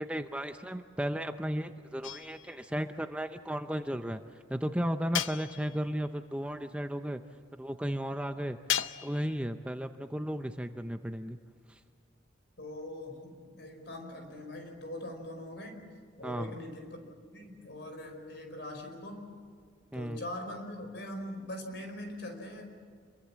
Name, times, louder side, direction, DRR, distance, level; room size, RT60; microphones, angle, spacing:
voice 1, 0.0-7.2 7.5-8.6 9.0-11.4 11.7-11.8 16.2-16.5 19.9-20.2, equal, 5° right, 7 dB, 0.6 m, -34 dB
sound 1, 2.0-2.7 5.1-5.9 8.7-9.4, left 10 dB, 80° left, 0.7 m, -35 dB
voice 2, 12.6-15.8 16.2-17.0 17.3-19.3 19.9-22.8, left 1 dB, 60° left, 4 dB, 5.1 m, -42 dB
27.5 x 23.0 x 7.5 m, 2.1 s
head